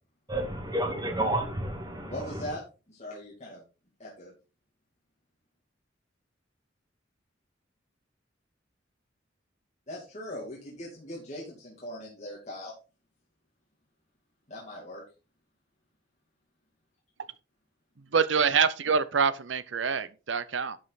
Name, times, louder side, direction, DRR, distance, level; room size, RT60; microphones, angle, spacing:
voice 1, 0.3-2.5, right 1 dB, 20° right, 2.5 m, -31 dB
voice 2, 2.1-2.6 2.9-3.6 4.0-4.3 9.9-12.7 14.5-15.0, left 1 dB, 35° left, 2.6 m, -40 dB
voice 3, 18.1-20.8, right 6 dB, 70° right, 0.7 m, -25 dB
11.5 x 5.5 x 4.1 m
head